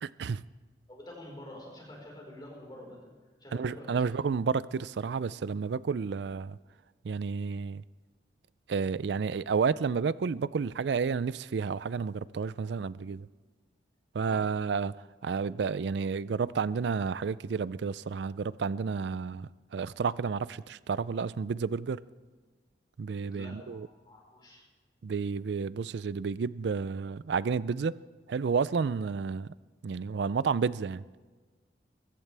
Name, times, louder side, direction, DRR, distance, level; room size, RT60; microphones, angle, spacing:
voice 1, 0.0-0.4 3.5-6.6 7.0-7.8 8.7-13.3 14.1-14.9 15.2-22.0 23.0-23.9 25.0-27.9 28.3-29.5 29.8-31.0, right 5 dB, 70° right, 0.4 m, -31 dB
voice 2, 0.9-3.1 3.4-4.1 14.2-14.4 23.3-24.6, left 1 dB, 25° left, 4.5 m, -47 dB
22.0 x 16.0 x 3.4 m
head